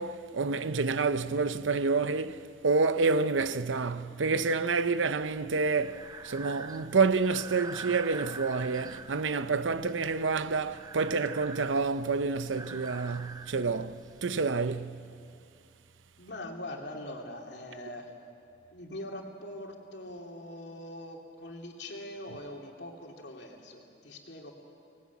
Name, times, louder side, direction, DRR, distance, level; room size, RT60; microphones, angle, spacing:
voice 1, 0.0-15.0, right 4 dB, 85° right, 0.7 m, -28 dB
Breathing, 5.2-14.2, right 4 dB, 20° right, 0.5 m, -45 dB
voice 2, 16.2-18.1 18.7-24.5, left 1 dB, 65° left, 2.9 m, -42 dB
25.0 x 19.5 x 8.4 m
head